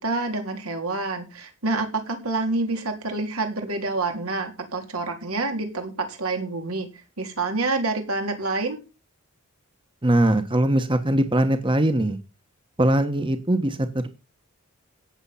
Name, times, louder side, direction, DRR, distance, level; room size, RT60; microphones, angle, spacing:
voice 1, 0.0-6.9 7.2-8.8, right 3 dB, 80° right, 5 dB, 3.5 m, -27 dB
voice 2, 10.0-12.2 12.8-14.1, right 1 dB, 25° right, 9 dB, 1.2 m, -21 dB
17.0 x 7.3 x 5.7 m, 0.31 s
head